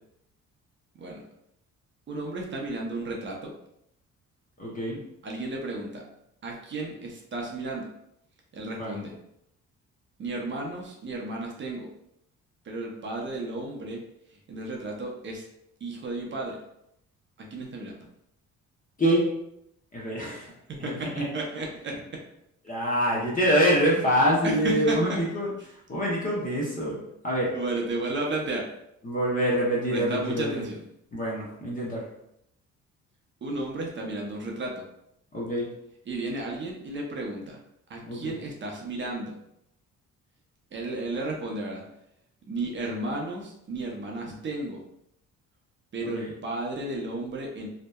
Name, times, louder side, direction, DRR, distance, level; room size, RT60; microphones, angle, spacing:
voice 1, 2.1-3.5 5.2-6.0 6.4-7.9 8.5-9.1 10.2-11.9 12.6-14.0 14.3-15.5 15.8-16.6 17.4-18.1 20.7-22.0 24.4-25.2 27.5-28.7 29.9-30.8 33.4-34.8 36.1-37.6 37.9-39.3 40.7-41.8 42.5-44.8 45.9-47.7, right 2 dB, 40° right, 0 dB, 0.6 m, -33 dB
voice 2, 4.6-5.0 8.8-9.0 19.0-19.3 19.9-20.5 20.8-21.3 22.6-25.5 25.9-27.5 29.0-30.6 31.1-32.0 35.3-35.7 38.1-38.3 46.0-46.3, equal, 25° left, -5 dB, 0.7 m, -25 dB
2.7 x 2.1 x 2.2 m, 0.78 s
cardioid pair, 90°, 30 cm